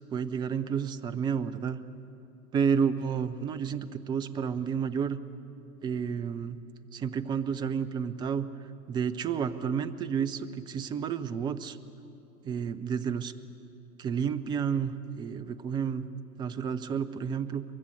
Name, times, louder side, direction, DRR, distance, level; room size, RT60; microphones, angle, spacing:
voice 1, 0.1-1.8 2.5-5.2 5.8-6.6 6.9-8.5 8.9-11.8 12.4-13.3 14.0-16.0 16.4-17.6, right 7 dB, 10° right, 11 dB, 0.5 m, -30 dB
23.0 x 23.0 x 7.9 m, 2.7 s
figure-of-eight pair, 105°, 43 cm